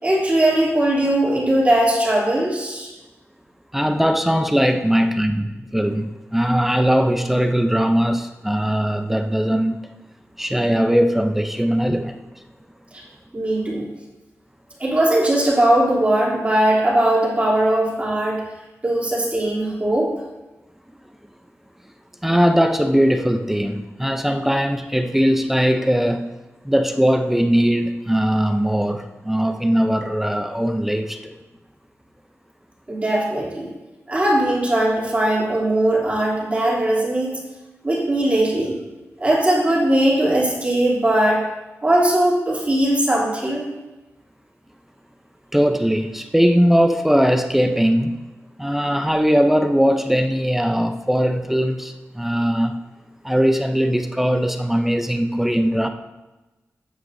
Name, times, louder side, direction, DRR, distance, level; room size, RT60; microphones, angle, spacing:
voice 1, 0.0-2.9 13.3-13.9 14.8-18.4 18.8-20.1 32.9-33.7 34.1-37.4 37.8-38.7 39.2-41.4 41.8-43.7, right 1 dB, 25° right, -5 dB, 3.0 m, -19 dB
voice 2, 3.7-9.8 10.4-12.2 22.2-26.4 26.6-31.4 45.5-48.3 48.6-52.8 53.2-55.9, equal, 5° right, 6 dB, 0.6 m, -20 dB
14.5 x 9.3 x 2.7 m, 1.1 s
wide cardioid pair, 140°, 5 cm